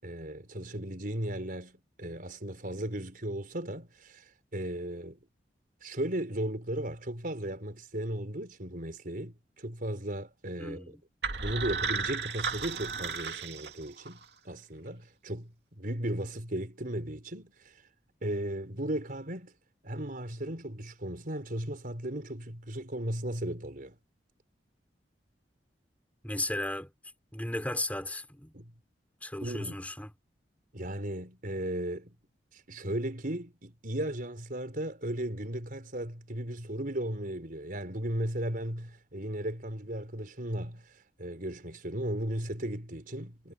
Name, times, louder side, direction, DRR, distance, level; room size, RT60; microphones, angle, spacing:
voice 1, 0.0-4.2 4.5-5.2 5.8-10.8 11.4-17.5 18.2-19.5 19.8-24.0 28.5-28.7 29.4-29.8 30.7-32.1 32.7-40.8 41.2-43.5, right 1 dB, 55° right, 4.9 m, -36 dB
voice 2, 10.6-11.0 26.2-26.9 27.3-28.5 29.2-30.1, left 1 dB, 10° left, 4.0 m, -35 dB
sound 1, 11.2-14.3, right 5 dB, 70° right, 2.5 m, -34 dB
head